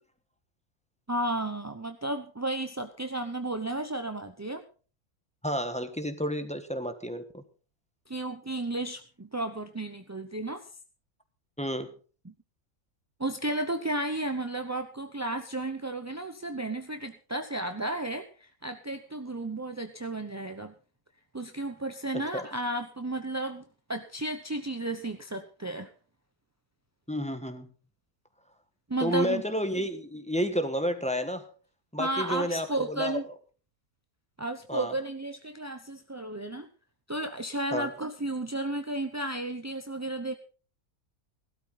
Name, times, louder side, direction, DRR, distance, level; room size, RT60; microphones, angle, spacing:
voice 1, 1.1-4.6 8.1-10.7 12.2-12.3 13.2-20.7 21.3-23.6 23.9-25.9 28.9-29.4 32.0-33.2 34.4-36.7 37.1-40.3, right 2 dB, 20° right, 7 dB, 0.5 m, -33 dB
voice 2, 5.4-7.4 11.6-11.9 22.1-22.4 27.1-27.7 29.0-31.5 31.9-33.2 34.7-34.9 37.7-37.9, equal, 5° left, 8 dB, 1.3 m, -31 dB
16.5 x 12.5 x 4.0 m, 0.38 s
omnidirectional pair, 1.5 m